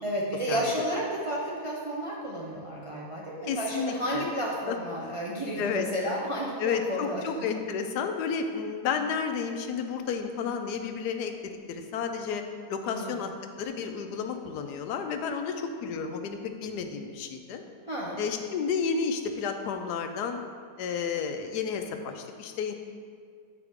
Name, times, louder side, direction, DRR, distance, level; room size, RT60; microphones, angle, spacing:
voice 1, 0.0-7.2 12.8-13.2 17.9-18.2, right 1 dB, 50° right, -4 dB, 0.3 m, -32 dB
voice 2, 3.5-4.2 4.7-4.8 5.0-5.2 5.6-5.9 6.6-12.4 12.7-13.3 13.6-17.6 18.2-20.4 20.8-22.7, left 6 dB, 90° left, 6 dB, 1.2 m, -31 dB
8.3 x 4.8 x 3.5 m, 2.1 s
omnidirectional pair, 1.7 m